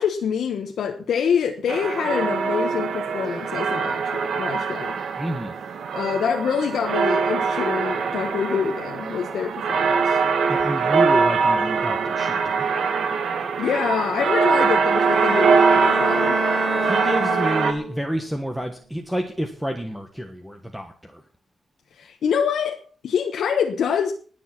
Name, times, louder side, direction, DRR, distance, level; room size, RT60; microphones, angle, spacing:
voice 1, 0.0-5.0 5.9-10.2 13.6-16.4 21.9-24.1, left 7 dB, 80° left, 1.2 m, -26 dB
sound 1, 1.7-17.7, right 5 dB, 85° right, 1.8 m, -22 dB
voice 2, 5.2-5.5 10.5-12.7 16.8-21.2, equal, ahead, 1.3 m, -29 dB
Bowed string instrument, 14.8-18.2, right 1 dB, 45° right, 2.9 m, -27 dB
20.0 x 7.2 x 5.9 m
wide cardioid pair, 155°, 0 cm